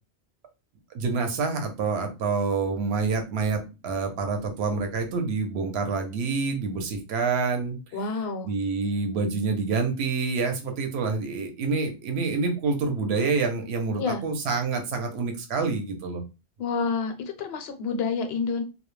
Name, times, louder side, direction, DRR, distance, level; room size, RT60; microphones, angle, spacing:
voice 1, 0.9-7.8 8.4-16.2, right 4 dB, 70° right, 5 dB, 0.9 m, -27 dB
voice 2, 7.9-8.5 14.0-14.2 16.6-18.6, left 5 dB, 65° left, 7 dB, 0.8 m, -28 dB
2.3 x 2.0 x 3.0 m, 0.28 s
omnidirectional pair, 1.2 m